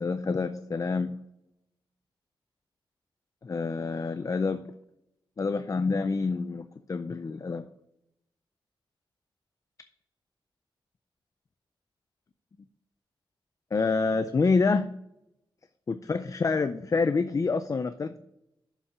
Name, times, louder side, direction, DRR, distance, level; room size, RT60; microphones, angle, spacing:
voice 1, 0.0-1.2 3.4-4.6 5.4-7.7 13.7-14.9 15.9-18.2, left 4 dB, 40° left, 11 dB, 0.4 m, -27 dB
6.9 x 5.6 x 5.8 m, 0.81 s
wide cardioid pair, 95°, 9 cm